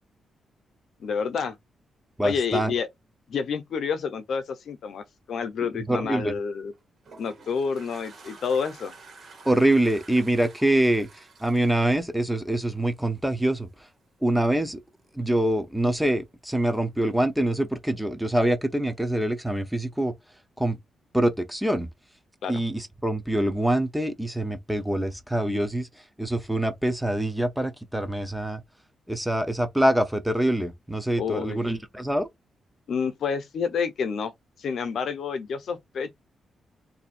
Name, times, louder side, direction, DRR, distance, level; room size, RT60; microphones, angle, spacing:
voice 1, 1.0-1.6 2.2-2.9 3.3-6.7 7.2-8.9 22.4-22.6 31.2-31.6 32.9-34.3 34.6-36.1, left 6 dB, 60° left, 0.8 m, -29 dB
voice 2, 2.2-2.7 5.9-6.3 9.4-13.7 14.2-14.8 15.1-20.1 20.6-20.8 21.1-21.9 22.5-25.9 26.2-28.6 29.1-32.3, right 1 dB, 5° right, 0.5 m, -25 dB
Toilet flush, 6.7-13.0, right 3 dB, 45° right, 1.6 m, -49 dB
2.7 x 2.4 x 4.2 m
wide cardioid pair, 150°, 0 cm